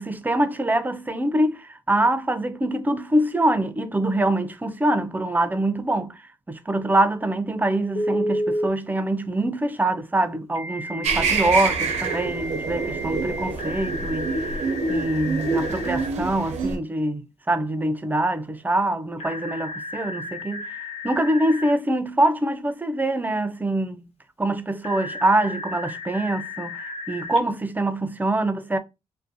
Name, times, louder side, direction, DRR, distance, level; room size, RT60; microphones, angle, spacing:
voice 1, 0.0-14.6 14.9-20.7 21.0-24.0 24.4-28.8, right 1 dB, 15° right, 0.4 m, -24 dB
Telephone, 7.9-8.7 10.5-16.1 19.2-21.7 24.8-27.4, left 1 dB, 60° left, 0.5 m, -32 dB
sound 1, 11.0-16.8, right 4 dB, 80° right, 0.5 m, -26 dB
2.5 x 2.0 x 2.6 m
supercardioid pair, 60°, 12 cm